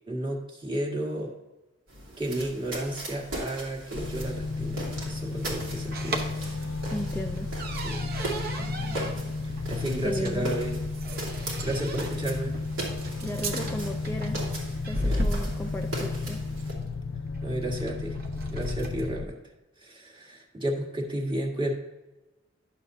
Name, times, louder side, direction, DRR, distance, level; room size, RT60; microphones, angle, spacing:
voice 1, 0.1-1.3 2.2-6.7 7.8-8.1 9.4-10.7 11.3-12.5 15.0-15.2 17.4-18.2 18.5-19.4 19.8-21.7, right 1 dB, 25° right, 0 dB, 1.5 m, -33 dB
sound 1, 1.9-16.7, right 1 dB, 90° right, 2.7 m, -39 dB
sound 2, 3.9-19.3, left 3 dB, 85° left, 0.4 m, -33 dB
sound 3, 4.1-19.1, right 1 dB, 55° right, 0.9 m, -37 dB
voice 2, 6.9-7.5 10.0-10.5 13.2-14.4 14.9-16.4, equal, 10° left, 3 dB, 0.4 m, -35 dB
10.5 x 6.8 x 2.7 m, 1.1 s
head